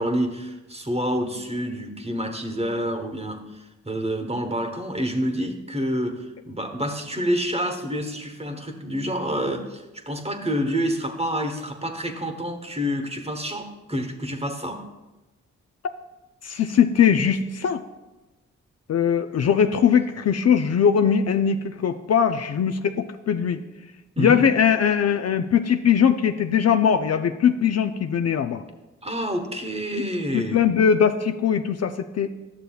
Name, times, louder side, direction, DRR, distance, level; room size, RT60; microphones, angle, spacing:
voice 1, 0.0-14.8 24.2-24.5 29.0-30.6, equal, 20° right, 5 dB, 1.1 m, -28 dB
voice 2, 16.4-17.8 18.9-23.6 24.2-28.6 30.3-32.4, left 7 dB, 50° left, 8 dB, 0.4 m, -20 dB
11.0 x 6.6 x 2.3 m, 1.1 s
supercardioid pair, 40°, 33 cm